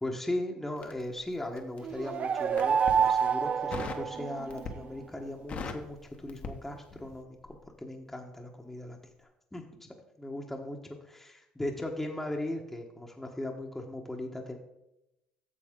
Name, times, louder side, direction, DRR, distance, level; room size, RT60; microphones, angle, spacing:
voice 1, 0.0-9.9 10.2-14.6, left 1 dB, 10° left, 0 dB, 1.2 m, -38 dB
Crackle, 0.8-1.9 2.4-3.0 3.7-4.1 4.5-5.0 5.3-7.2 7.4-7.7, left 4 dB, 50° left, 1.2 m, -39 dB
sound 1, 1.8-4.7, right 7 dB, 45° right, 0.4 m, -28 dB
9.6 x 6.8 x 3.7 m, 0.88 s
supercardioid pair, 80°, 3 cm